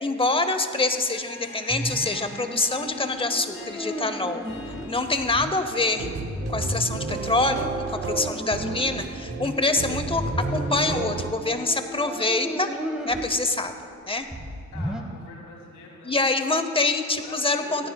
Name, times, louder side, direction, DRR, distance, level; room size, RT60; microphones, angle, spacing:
voice 1, 0.0-4.4 4.9-6.1 6.5-12.7 13.0-13.7 14.1-14.3 16.0-17.9, left 2 dB, 20° left, 8 dB, 0.8 m, -25 dB
Harp, 0.9-6.7, left 3 dB, 45° left, 2.4 m, -44 dB
sound 1, 1.7-13.3 13.8-13.9 14.2-15.0, equal, 5° right, 1.3 m, -34 dB
Airport Lounge, 5.9-11.3, right 5 dB, 50° right, 0.8 m, -33 dB
voice 2, 14.7-16.2 17.2-17.9, left 3 dB, 80° left, -2 dB, 2.9 m, -44 dB
17.0 x 13.5 x 2.3 m, 2.5 s
cardioid pair, 90°, 30 cm